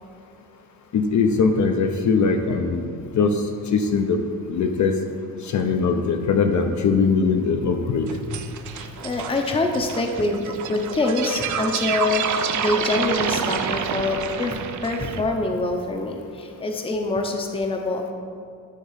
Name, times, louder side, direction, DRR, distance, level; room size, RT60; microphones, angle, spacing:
voice 1, 0.9-2.8 3.1-3.3 3.7-4.2 4.5-4.9 5.4-8.1, left 5 dB, 55° left, 5 dB, 0.7 m, -21 dB
sound 1, 8.1-15.2, right 8 dB, 55° right, 0.6 m, -28 dB
voice 2, 8.7-18.1, left 2 dB, 15° left, 3 dB, 0.7 m, -25 dB
10.0 x 3.6 x 5.7 m, 2.4 s
cardioid pair, 120°, 35 cm